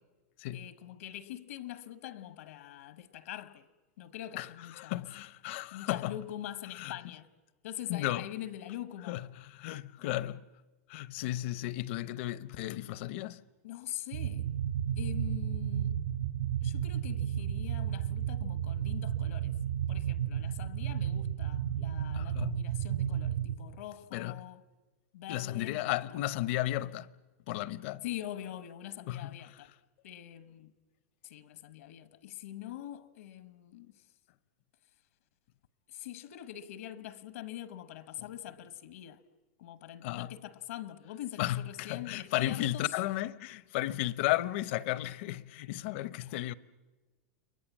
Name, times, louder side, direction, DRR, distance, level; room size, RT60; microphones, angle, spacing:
voice 1, 0.5-3.7 4.0-5.0 5.7-7.3 7.6-9.1 13.6-14.5 15.0-16.0 16.6-19.5 19.9-24.6 25.1-26.0 28.0-29.7 30.0-30.7 31.2-33.9 35.9-39.2 39.6-42.8, left 12 dB, 75° left, 1.1 m, -44 dB
voice 2, 4.3-6.2 6.7-7.1 7.9-8.3 9.1-10.5 10.9-13.4 22.1-22.7 24.1-24.4 25.3-27.1 27.5-28.0 29.1-29.6 38.2-38.3 40.0-40.3 41.4-46.5, left 15 dB, 50° left, 0.7 m, -34 dB
sound 1, 14.1-23.5, right 10 dB, 75° right, 6.5 m, -33 dB
30.0 x 22.0 x 7.3 m
supercardioid pair, 155°, 8 cm